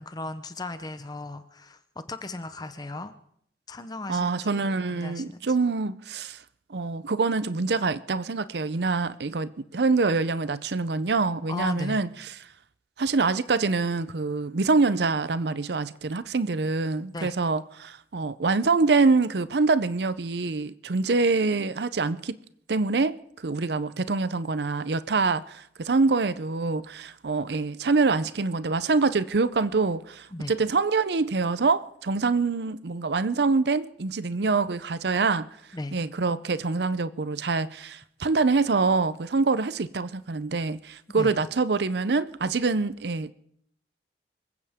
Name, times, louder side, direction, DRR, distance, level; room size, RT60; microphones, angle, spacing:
voice 1, 0.0-1.8 2.1-3.1 3.7-5.5 11.5-12.0 17.1-17.4 30.3-30.5 35.7-36.0 41.2-41.4, left 2 dB, 25° left, 0.7 m, -36 dB
voice 2, 4.1-6.4 6.7-12.4 13.0-22.4 22.7-35.5 35.9-43.3, right 4 dB, 70° right, 0.6 m, -25 dB
25.0 x 15.5 x 3.6 m
head